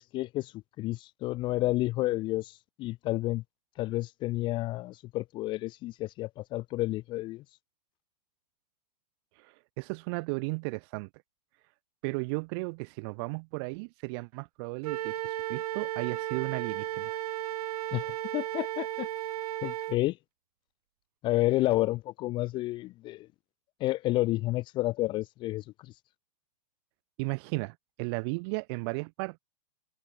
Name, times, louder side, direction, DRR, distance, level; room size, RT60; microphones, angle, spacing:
voice 1, 0.0-3.4 3.8-7.4 17.9-19.1 19.6-20.2 21.2-23.3 23.8-25.9, left 18 dB, 25° left, 0.6 m, -30 dB
voice 2, 9.4-11.1 12.0-17.2 27.2-29.4, right 31 dB, 40° right, 1.5 m, -35 dB
Wind instrument woodwind instrument, 14.8-20.0, right 13 dB, 65° right, 1.1 m, -34 dB
hypercardioid pair, 155°, 21 cm